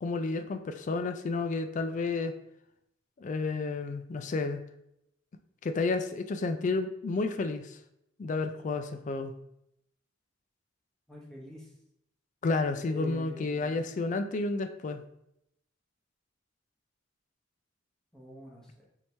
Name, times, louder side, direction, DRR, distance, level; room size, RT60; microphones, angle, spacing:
voice 1, 0.0-2.3 3.2-4.6 5.6-7.8 8.2-9.3 12.4-15.0, left 3 dB, 40° left, 8 dB, 0.3 m, -31 dB
voice 2, 11.1-11.7 12.9-14.0 18.1-18.9, equal, 5° left, -4 dB, 0.9 m, -45 dB
4.6 x 2.8 x 3.3 m, 0.78 s
head